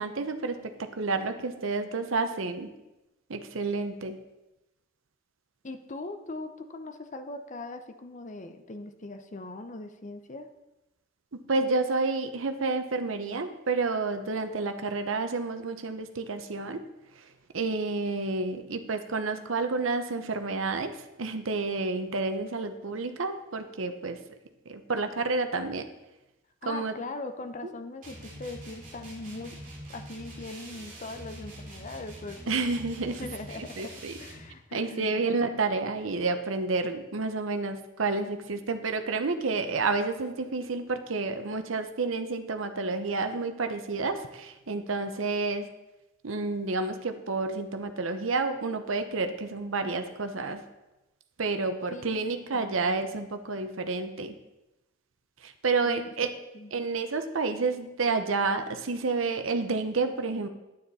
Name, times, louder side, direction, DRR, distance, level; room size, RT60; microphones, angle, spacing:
voice 1, 0.0-2.7 3.3-4.2 11.5-16.8 17.2-17.3 17.5-24.2 24.7-25.9 26.7-26.9 32.5-33.2 33.6-34.1 34.7-45.7 46.2-50.6 51.4-54.3 55.4-56.3 56.7-60.5, right 3 dB, 85° right, 8 dB, 0.8 m, -30 dB
voice 2, 5.6-10.5 26.6-32.5 33.2-35.3 51.9-52.9 55.9-56.1 56.5-56.7, left 2 dB, 40° left, 7 dB, 0.7 m, -40 dB
sound 1, 28.0-34.5, right 1 dB, 40° right, 2.5 m, -45 dB
9.4 x 9.3 x 4.1 m, 0.99 s
head